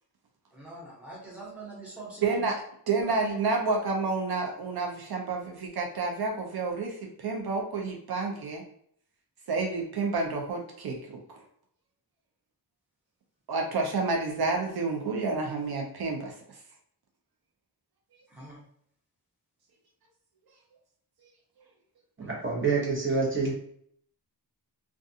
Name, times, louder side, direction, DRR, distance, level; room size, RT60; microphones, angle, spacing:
voice 1, 0.5-2.5 3.0-3.1 18.3-18.6 22.2-22.3, right 3 dB, 5° right, -6 dB, 1.0 m, -44 dB
voice 2, 2.2-2.6 2.9-8.6 9.5-11.4 13.5-16.3, right 3 dB, 75° right, 1 dB, 0.5 m, -29 dB
voice 3, 22.2-23.5, right 4 dB, 30° right, -3 dB, 0.8 m, -27 dB
2.4 x 2.3 x 2.6 m, 0.65 s
wide cardioid pair, 115°, 39 cm